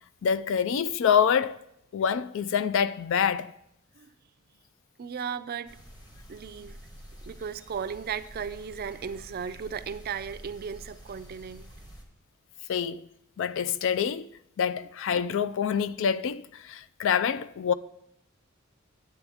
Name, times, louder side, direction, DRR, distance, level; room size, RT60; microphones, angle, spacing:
voice 1, 0.2-1.6 1.9-3.5 12.7-13.1 13.4-14.3 14.6-17.7, left 7 dB, 65° left, 0.4 m, -26 dB
voice 2, 5.0-5.8 6.3-6.8 7.3-11.7, right 7 dB, 45° right, 0.4 m, -36 dB
sound 1, 5.7-12.0, equal, 20° left, 1.1 m, -48 dB
10.5 x 7.9 x 3.5 m
head